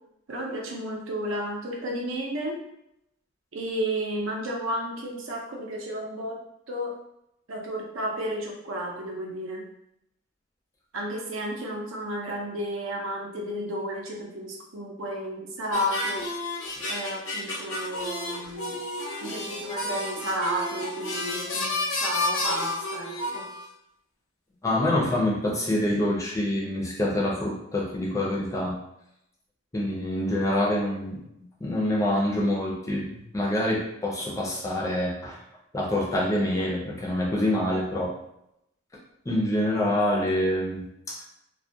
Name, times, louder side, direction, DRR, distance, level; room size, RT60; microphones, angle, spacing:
voice 1, 0.3-2.6 3.5-6.4 6.7-7.0 7.5-9.6 10.9-16.3 16.9-18.8 19.2-23.4, equal, 70° right, -1 dB, 0.6 m, -32 dB
sound 1, 15.7-23.7, left 2 dB, 65° left, 0.5 m, -31 dB
voice 2, 24.6-28.8 29.7-31.2 31.6-35.4 35.7-38.1 39.2-41.2, left 1 dB, 15° left, -3 dB, 0.5 m, -26 dB
2.2 x 2.1 x 2.7 m, 0.80 s
head